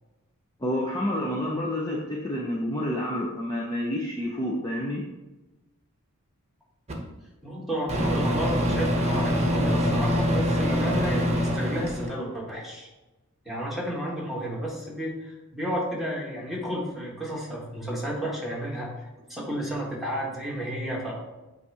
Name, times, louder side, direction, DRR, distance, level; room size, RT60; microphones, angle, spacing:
voice 1, 0.6-5.0, left 1 dB, 20° left, -2 dB, 0.7 m, -29 dB
Microwave oven, 6.9-7.0 7.9-12.1, equal, 30° right, 0.9 m, -24 dB
voice 2, 7.4-12.9 13.4-21.2, equal, ahead, -4 dB, 1.7 m, -32 dB
8.1 x 2.7 x 4.8 m, 1.1 s
head